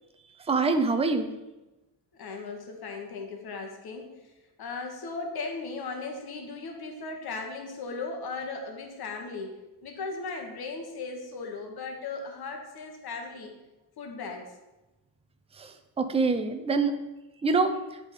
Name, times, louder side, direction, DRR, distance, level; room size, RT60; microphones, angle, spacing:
voice 1, 0.5-1.3 15.6-17.0 17.4-17.8, right 4 dB, 15° right, 8 dB, 0.5 m, -25 dB
voice 2, 2.2-4.1 4.6-13.5 14.0-14.4, left 4 dB, 70° left, 3 dB, 1.4 m, -37 dB
8.9 x 3.8 x 4.9 m, 1.0 s
cardioid pair, 110°, 38 cm